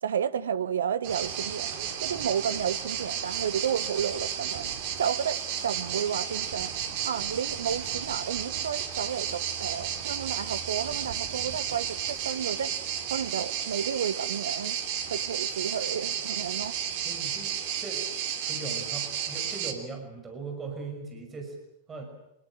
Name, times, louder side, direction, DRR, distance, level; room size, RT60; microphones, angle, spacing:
voice 1, 0.0-1.7 2.0-6.7 7.0-12.8 13.1-14.8 15.1-16.7, right 8 dB, 65° right, 1.0 m, -32 dB
sound 1, 1.0-19.7, right 9 dB, 50° right, 3.3 m, -33 dB
voice 2, 17.0-18.1 18.4-21.6 21.9-22.0, right 4 dB, 20° right, 5.9 m, -39 dB
26.5 x 20.5 x 8.8 m
figure-of-eight pair, 90°, 0 cm